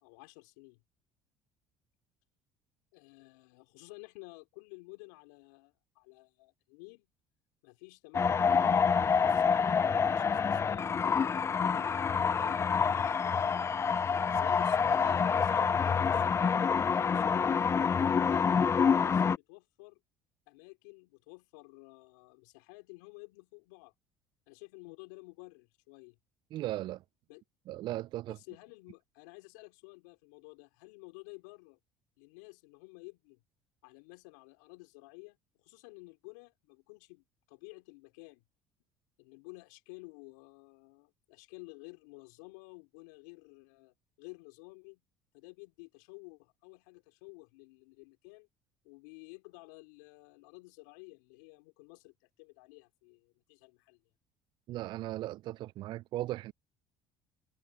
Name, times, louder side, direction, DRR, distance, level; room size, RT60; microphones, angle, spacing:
voice 1, 0.0-0.8 2.9-7.1 7.6-12.0 12.3-12.8 13.1-17.6 18.2-20.0 20.5-23.9 24.5-26.2 27.3-27.4 28.3-31.8 32.2-33.4 33.8-38.4 39.2-45.0 45.3-48.5 48.8-54.0, left 29 dB, 80° left, 3.3 m, -52 dB
sound 1, 8.1-19.4, left 6 dB, 30° left, 0.5 m, -27 dB
voice 2, 26.5-27.0 27.7-28.4 54.7-56.5, right 15 dB, 55° right, 0.4 m, -37 dB
hypercardioid pair, 65°, 9 cm